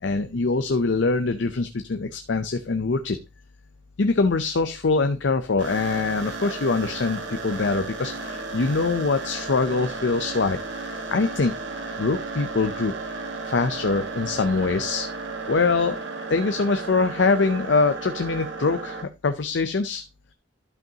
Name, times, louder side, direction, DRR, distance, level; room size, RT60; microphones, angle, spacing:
voice 1, 0.0-3.2 4.0-10.6 11.1-12.9 13.5-15.1 15.5-16.0 16.3-20.0, left 3 dB, 80° left, 8 dB, 0.6 m, -23 dB
sound 1, 5.6-19.0, right 3 dB, 80° right, 1.6 m, -34 dB
12.0 x 5.4 x 2.8 m, 0.25 s
head